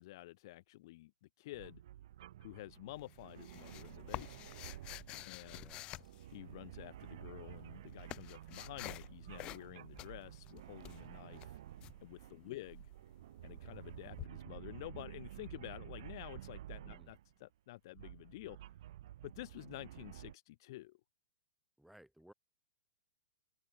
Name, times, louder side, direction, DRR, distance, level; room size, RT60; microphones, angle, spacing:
voice 1, 0.0-1.8 2.4-4.5 5.2-5.7 6.3-11.6 12.0-12.8 13.4-18.7 19.2-21.0, left 18 dB, 45° left, 0.7 m, -50 dB
sound 1, 1.5-17.3 17.9-20.3, right 13 dB, 55° right, 1.2 m, -52 dB
sound 2, 1.8-8.1, right 14 dB, 25° right, 7.2 m, -77 dB
sound 3, 3.0-6.8 7.5-9.1 9.4-9.7 10.0-11.9 14.2-14.3, left 17 dB, 30° left, 0.3 m, -48 dB
voice 2, 5.5-6.1 12.4-12.7 16.8-17.1 21.8-22.3, right 1 dB, ahead, 3.7 m, -61 dB
open air
figure-of-eight pair, 105°, 3 cm